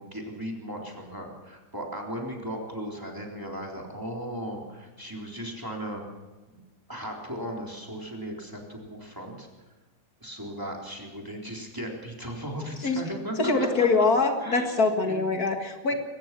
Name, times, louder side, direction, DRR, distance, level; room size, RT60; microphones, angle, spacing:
voice 1, 0.0-6.0 6.5-6.6 6.9-9.5 10.2-14.1 14.4-14.7 15.0-15.4, equal, 10° right, 0 dB, 3.8 m, -37 dB
voice 2, 13.4-15.9, left 3 dB, 60° left, 4 dB, 2.3 m, -24 dB
22.5 x 19.5 x 6.1 m, 1.2 s
omnidirectional pair, 1.8 m